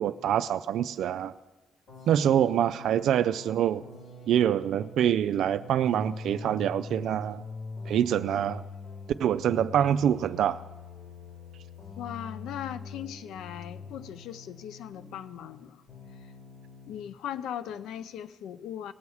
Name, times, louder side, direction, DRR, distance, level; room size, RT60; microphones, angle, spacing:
voice 1, 0.0-1.3 2.1-3.8 4.3-7.4 7.9-8.6 9.2-10.6, right 10 dB, 75° right, 0.3 m, -25 dB
sound 1, 1.9-15.6 15.9-17.1, left 3 dB, 65° left, 4.3 m, -44 dB
voice 2, 12.0-15.8 16.1-16.3 16.9-18.9, left 10 dB, 85° left, 0.4 m, -39 dB
19.0 x 7.1 x 4.8 m
cardioid pair, 90°, 0 cm